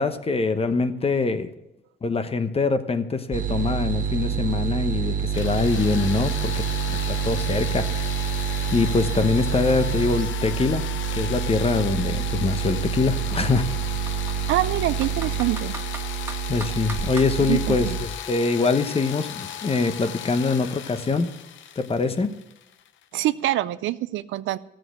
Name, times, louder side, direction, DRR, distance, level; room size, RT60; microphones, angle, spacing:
voice 1, 0.0-1.5 2.0-6.6 6.9-8.1 8.7-10.8 11.2-13.8 16.5-21.3 21.8-22.3, left 4 dB, 30° left, 10 dB, 1.0 m, -24 dB
sound 1, 3.3-18.1, right 8 dB, 40° right, 0.8 m, -27 dB
sound 2, 5.3-23.0, left 10 dB, 75° left, 0.7 m, -36 dB
Computer keyboard, 12.2-12.3 12.6-12.7 13.3-14.6 15.0-17.3, right 2 dB, 10° right, 1.8 m, -40 dB
voice 2, 14.5-15.7 17.4-18.0 23.1-24.6, right 15 dB, 80° right, 14 dB, 0.5 m, -25 dB
14.0 x 7.7 x 6.2 m, 0.88 s
cardioid pair, 90°, 20 cm